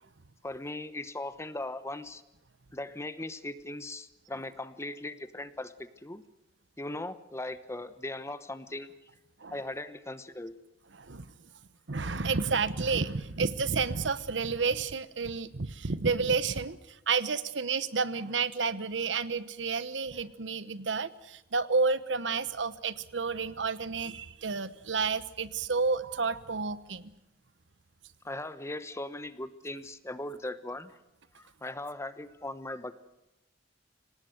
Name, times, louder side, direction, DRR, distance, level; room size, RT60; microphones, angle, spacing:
voice 1, 0.4-2.2 2.7-6.2 6.8-8.9 9.5-10.6 28.2-31.0 31.3-33.0, left 2 dB, 15° left, 13 dB, 1.0 m, -39 dB
voice 2, 11.0-11.3 11.9-27.1, right 4 dB, 80° right, 15 dB, 1.1 m, -30 dB
26.0 x 18.0 x 8.0 m, 0.93 s
head